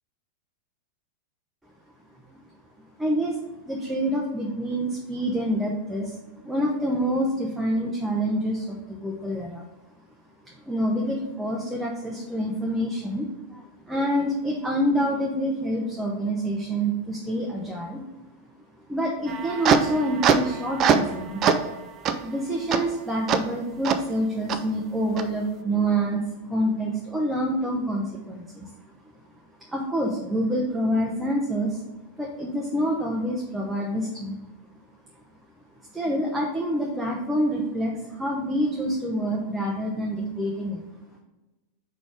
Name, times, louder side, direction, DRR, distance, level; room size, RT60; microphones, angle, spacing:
voice 1, 3.0-3.4 3.6-6.1 6.4-9.6 10.7-18.0 18.9-21.4 22.2-28.7 29.7-31.8 32.2-34.4 35.9-40.8, equal, 5° right, -2 dB, 0.8 m, -27 dB
sound 1, 19.3-21.1 21.4-21.7 22.1-22.2 22.7-22.8 23.3-23.4 23.8-24.0 24.5-24.6 25.2-25.3, right 7 dB, 30° right, 0.5 m, -22 dB
4.7 x 4.1 x 5.0 m, 1.1 s
figure-of-eight pair, 90°, 0 cm